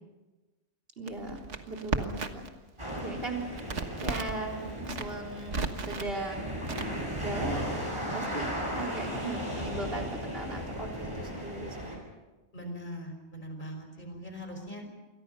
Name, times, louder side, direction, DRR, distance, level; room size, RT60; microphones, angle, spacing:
voice 1, 1.0-1.4 1.7-2.5 3.0-3.5 4.0-6.6 7.2-7.7 8.1-12.0, right 2 dB, 50° right, 1 dB, 4.0 m, -37 dB
Crackle, 1.1-2.6 2.8-4.4 4.8-6.1 6.6-7.3, right 4 dB, 70° right, 1.8 m, -34 dB
sound 1, 2.8-12.0, equal, 25° right, 7.8 m, -36 dB
voice 2, 12.5-14.9, equal, 40° left, 4 dB, 5.6 m, -41 dB
28.5 x 23.5 x 5.7 m, 1.2 s
omnidirectional pair, 1.3 m